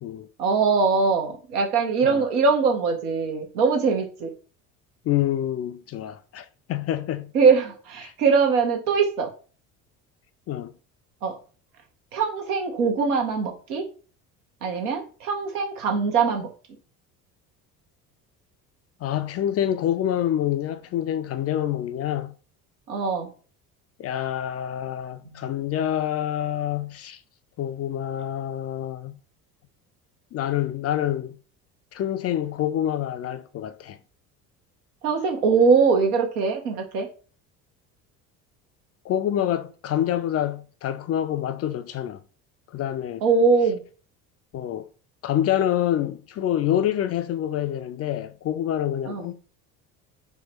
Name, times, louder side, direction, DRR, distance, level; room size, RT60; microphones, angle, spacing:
voice 1, 0.4-4.3 7.3-9.3 11.2-11.3 12.1-13.8 14.6-16.5 22.9-23.3 25.3-25.4 35.0-37.1 43.2-43.8 49.1-49.3, right 5 dB, 80° right, 1.1 m, -22 dB
voice 2, 5.0-7.3 8.0-8.1 10.5-10.7 19.0-22.4 24.0-27.2 27.6-29.2 30.3-31.4 31.9-34.0 39.0-42.2 42.7-43.2 44.5-44.9 45.2-49.3, left 11 dB, 35° left, 0.4 m, -27 dB
4.6 x 2.2 x 4.3 m
hypercardioid pair, 65°, 44 cm